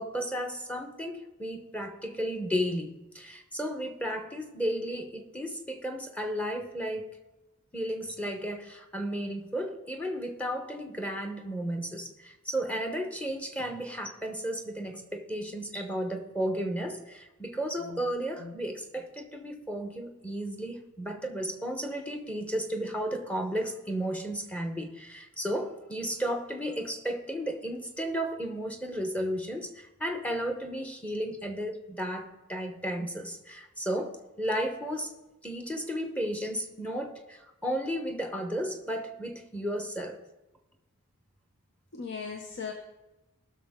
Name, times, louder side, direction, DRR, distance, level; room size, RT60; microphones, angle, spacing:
voice 1, 0.0-7.1 7.7-35.1 35.4-40.2, equal, 5° left, 5 dB, 0.9 m, -33 dB
voice 2, 41.9-42.7, left 5 dB, 50° left, 3 dB, 0.8 m, -38 dB
18.5 x 6.3 x 3.6 m, 1.0 s
head